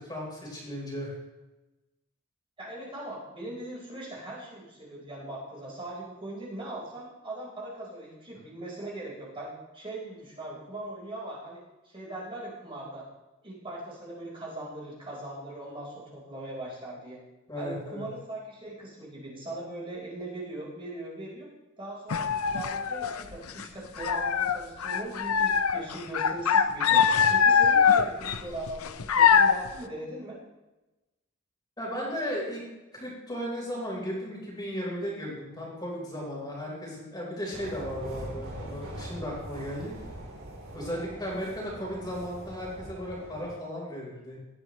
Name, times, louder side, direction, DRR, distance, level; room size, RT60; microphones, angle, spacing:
voice 1, 0.1-1.1 17.5-18.1 31.8-32.6 32.9-39.9 40.7-44.4, equal, 20° left, -4 dB, 4.2 m, -35 dB
voice 2, 2.6-13.0 13.4-17.2 17.6-21.5 21.8-27.0 27.3-30.4, right 1 dB, 25° right, -5 dB, 4.3 m, -40 dB
sound 1, 22.1-23.6 24.0-29.7, left 6 dB, 90° left, 0.7 m, -23 dB
sound 2, 37.5-43.5, right 1 dB, 70° right, 3.6 m, -42 dB
18.0 x 12.0 x 3.1 m, 1.1 s
head